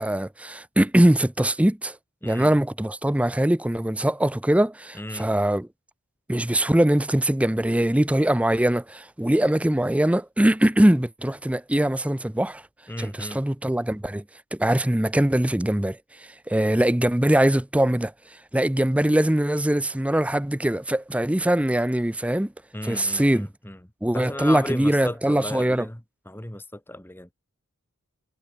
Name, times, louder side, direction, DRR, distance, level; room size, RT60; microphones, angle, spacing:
voice 1, 0.0-2.0 2.2-5.7 6.3-12.6 13.0-14.2 14.5-16.0 16.5-18.1 18.5-22.5 22.8-23.5 24.0-25.9, right 1 dB, 5° right, 0.5 m, -22 dB
voice 2, 2.2-2.5 4.9-5.3 12.9-13.4 16.5-16.8 22.7-23.8 24.1-26.0 26.2-27.3, left 1 dB, 10° left, 1.6 m, -35 dB
head